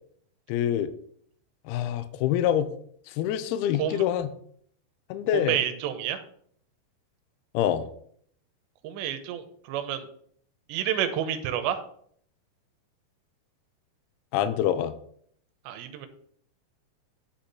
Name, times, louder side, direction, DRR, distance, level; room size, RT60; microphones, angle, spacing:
voice 1, 0.5-0.9 1.7-2.7 3.1-4.3 5.1-5.6 7.5-7.9 14.3-14.9, left 10 dB, 85° left, 10 dB, 2.3 m, -26 dB
voice 2, 5.3-6.2 8.8-10.1 10.7-11.8 15.7-16.1, right 10 dB, 80° right, 8 dB, 3.1 m, -29 dB
8.5 x 8.4 x 4.1 m, 0.63 s
omnidirectional pair, 5.0 m